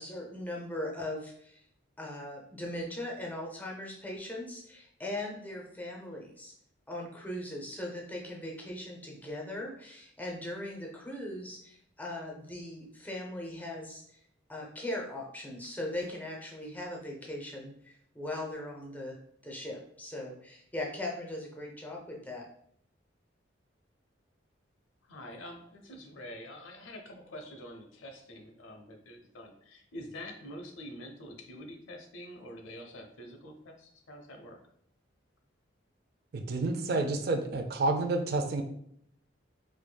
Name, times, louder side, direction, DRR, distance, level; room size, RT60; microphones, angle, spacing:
voice 1, 0.0-1.6 2.0-6.5 6.9-14.2 14.5-19.2 19.4-22.5, left 1 dB, 10° left, -1 dB, 0.5 m, -39 dB
voice 2, 25.0-34.6, left 1 dB, 85° left, 3 dB, 0.7 m, -46 dB
voice 3, 36.3-38.6, right 2 dB, 50° right, 7 dB, 0.4 m, -29 dB
4.5 x 2.5 x 2.2 m, 0.68 s
head